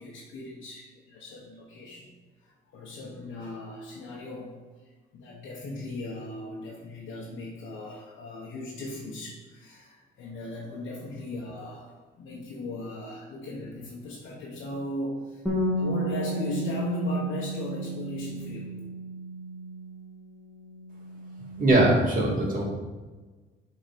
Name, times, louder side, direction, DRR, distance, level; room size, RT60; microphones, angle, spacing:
voice 1, 0.0-2.1 2.4-4.6 5.1-15.4 15.8-18.8, left 1 dB, 75° left, -5 dB, 1.3 m, -37 dB
Bass guitar, 15.5-20.2 20.4-21.7, right 1 dB, ahead, 2.5 m, -33 dB
voice 2, 21.6-22.6, right 2 dB, 45° right, -3 dB, 2.4 m, -21 dB
7.5 x 4.2 x 5.3 m, 1.3 s
cardioid pair, 90°, 20 cm